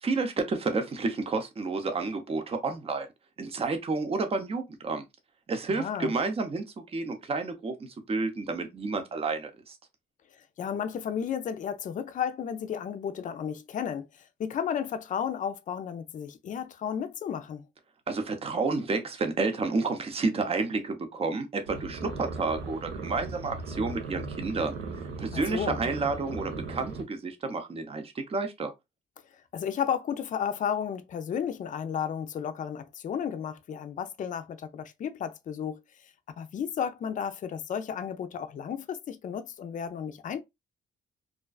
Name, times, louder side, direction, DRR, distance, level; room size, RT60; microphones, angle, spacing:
voice 1, 0.0-3.1 3.4-5.0 5.5-6.6 6.9-9.8 18.1-24.8 25.2-28.7, right 3 dB, 30° right, 0.6 m, -30 dB
voice 2, 5.7-6.1 10.6-17.7 25.3-25.8 29.5-35.8 36.4-40.4, left 8 dB, 40° left, 0.4 m, -33 dB
sound 1, 21.6-27.0, right 3 dB, 90° right, 0.7 m, -38 dB
2.5 x 2.2 x 2.2 m
cardioid pair, 90°, 20 cm